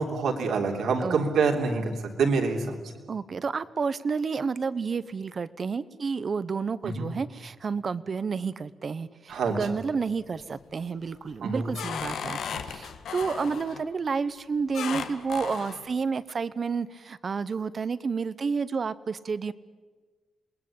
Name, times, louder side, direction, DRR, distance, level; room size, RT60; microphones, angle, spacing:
voice 1, 0.0-1.9 2.2-2.8 6.8-7.1 9.3-9.6 11.4-11.7, right 4 dB, 85° right, 2 dB, 3.3 m, -26 dB
voice 2, 3.1-19.5, right 5 dB, 45° right, 16 dB, 0.9 m, -30 dB
sound 1, 9.3-10.0 10.4-10.8 11.3-13.9 14.7-15.8, left 7 dB, 85° left, 1.6 m, -36 dB
27.0 x 20.5 x 8.7 m, 1.4 s
cardioid pair, 110°, 0 cm